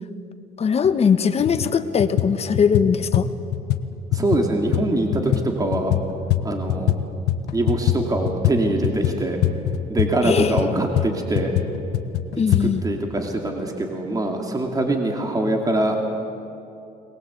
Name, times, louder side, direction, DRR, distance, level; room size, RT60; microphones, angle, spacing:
voice 1, 0.6-3.3 10.2-10.5 12.4-12.8, left 6 dB, 40° left, 10 dB, 1.2 m, -20 dB
sound 1, 0.8-0.9 1.4-1.7 2.0-7.0 7.3-12.6, left 12 dB, 80° left, 1.1 m, -23 dB
voice 2, 4.1-5.9 6.4-7.0 7.5-9.4 9.9-11.5 12.3-16.0, right 2 dB, 20° right, 2 dB, 2.5 m, -23 dB
22.0 x 20.0 x 8.2 m, 2.7 s
cardioid pair, 110°, 17 cm